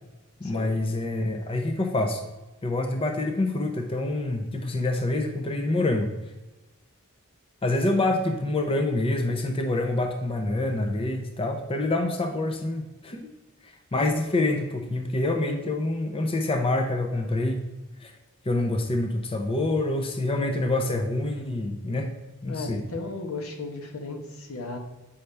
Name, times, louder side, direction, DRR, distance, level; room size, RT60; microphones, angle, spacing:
voice 1, 0.4-2.2 2.6-6.1 7.6-13.3 13.9-17.6 18.0-18.1 18.5-22.1 22.4-22.8, left 2 dB, 25° left, 5 dB, 0.5 m, -26 dB
voice 2, 22.5-24.8, left 3 dB, 75° left, 3 dB, 1.1 m, -35 dB
8.1 x 5.5 x 3.3 m, 1.1 s
head